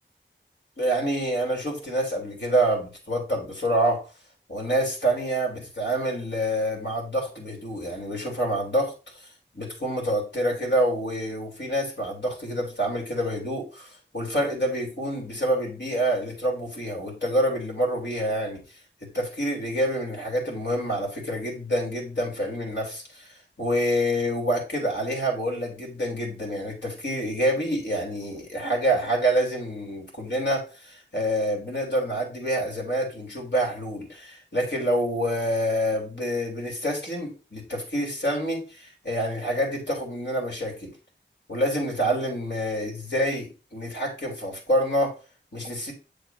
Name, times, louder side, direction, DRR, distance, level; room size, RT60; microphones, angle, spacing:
voice 1, 0.8-4.0 4.5-9.3 9.5-18.6 19.0-40.9 41.5-45.1 45.5-45.9, right 1 dB, 65° left, 0 dB, 3.3 m, -27 dB
8.1 x 6.8 x 2.6 m, 0.32 s
wide cardioid pair, 50°, 20 cm